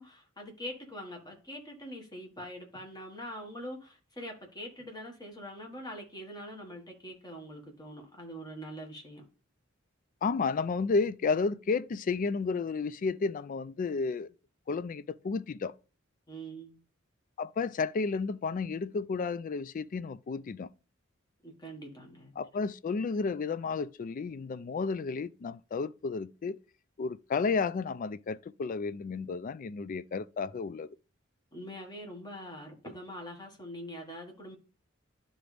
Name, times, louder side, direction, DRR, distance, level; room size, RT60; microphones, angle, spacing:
voice 1, 0.0-9.2 16.3-16.8 21.4-22.3 31.5-34.6, equal, 20° left, 1.7 m, -44 dB
voice 2, 10.2-14.3 14.7-15.7 17.4-20.7 22.4-26.6 27.0-30.9, left 4 dB, 40° left, 0.3 m, -32 dB
11.5 x 3.9 x 3.4 m
head